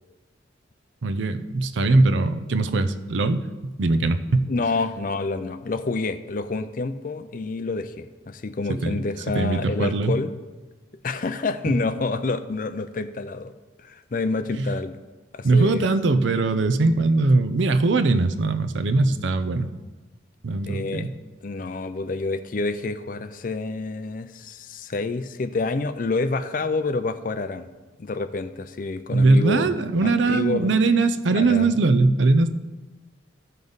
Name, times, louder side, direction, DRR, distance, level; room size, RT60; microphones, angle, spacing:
voice 1, 1.0-4.5 8.7-9.0 9.3-10.1 11.7-11.8 14.6-14.7 15.4-19.7 20.4-21.1 29.1-32.5, right 3 dB, 80° right, 10 dB, 0.6 m, -21 dB
voice 2, 4.5-10.3 11.0-13.5 13.8-15.0 15.3-15.9 20.7-21.1 21.4-27.7 28.0-29.7 30.0-30.7 31.3-31.8, left 3 dB, 45° left, 11 dB, 0.5 m, -28 dB
14.0 x 5.3 x 4.0 m, 1.2 s
head